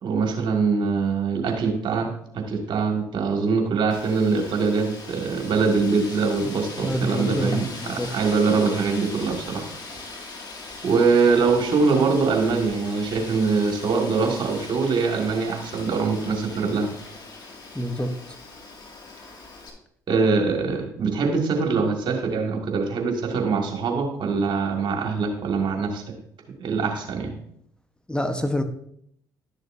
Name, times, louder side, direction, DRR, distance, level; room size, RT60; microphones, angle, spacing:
voice 1, 0.0-9.7 10.8-16.9 20.1-26.1 26.6-27.3, right 4 dB, 55° right, 2 dB, 1.8 m, -23 dB
Wind, 3.9-19.7, left 3 dB, 50° left, 2.1 m, -40 dB
voice 2, 6.8-8.1 17.7-18.1 28.1-28.6, equal, 10° left, 7 dB, 1.0 m, -26 dB
11.5 x 6.6 x 2.6 m, 0.69 s
hypercardioid pair, 55°, 9 cm